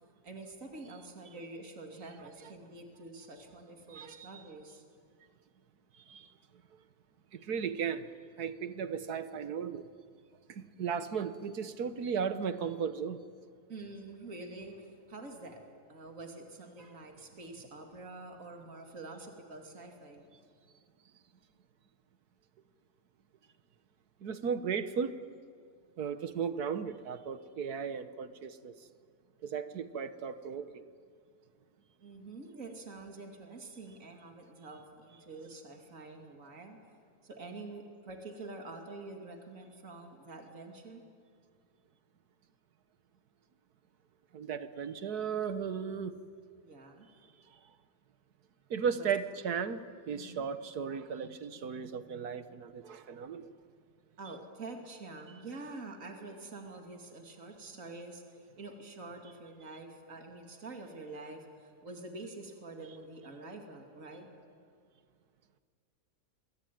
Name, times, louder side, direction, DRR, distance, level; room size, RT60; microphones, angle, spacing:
voice 1, 0.2-4.8 13.7-15.6 15.9-20.2 32.0-36.8 37.2-41.0 46.6-47.1 49.0-49.1 50.1-50.5 54.2-64.3, right 2 dB, 55° right, 3.0 m, -47 dB
voice 2, 3.9-4.4 6.0-6.3 7.3-8.1 8.4-9.9 10.5-13.2 24.2-25.2 26.0-28.7 29.4-30.8 44.3-46.2 47.5-47.6 48.7-53.5, right 7 dB, 75° right, 1.7 m, -36 dB
27.5 x 23.0 x 9.3 m
omnidirectional pair, 1.7 m